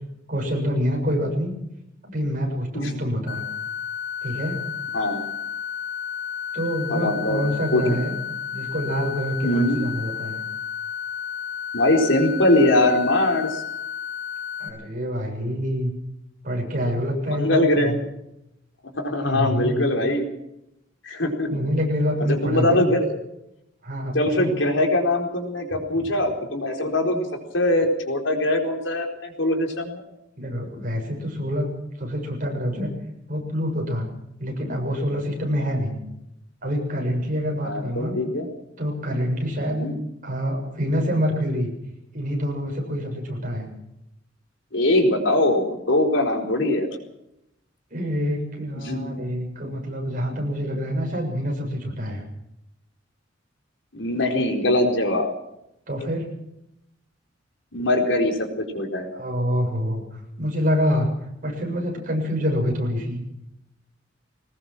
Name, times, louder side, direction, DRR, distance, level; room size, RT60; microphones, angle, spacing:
voice 1, 0.3-1.5 2.0-3.4 4.2-4.6 6.5-8.2 8.5-10.4 14.6-15.9 16.4-18.0 19.2-19.8 21.5-22.9 23.8-24.6 26.0-26.1 30.4-31.7 32.0-32.9 33.3-34.1 34.4-36.0 36.6-38.2 38.8-39.9 40.2-41.7 42.1-43.7 47.9-52.2 55.9-56.3 59.1-60.0 60.4-61.1 61.4-63.2, equal, 45° right, 1 dB, 7.2 m, -26 dB
sound 1, 3.3-14.7, left 8 dB, 50° left, 7.6 m, -32 dB
voice 2, 6.9-7.4 7.7-7.8 9.4-9.8 11.7-13.6 17.3-18.1 18.9-20.3 21.0-21.5 22.2-23.2 24.1-27.3 27.5-30.0 37.6-38.5 39.7-40.0 44.7-47.0 48.8-49.1 53.9-55.3 57.7-58.5 58.7-59.1, left 1 dB, 85° left, 3 dB, 4.3 m, -22 dB
22.0 x 19.5 x 6.2 m, 0.84 s
head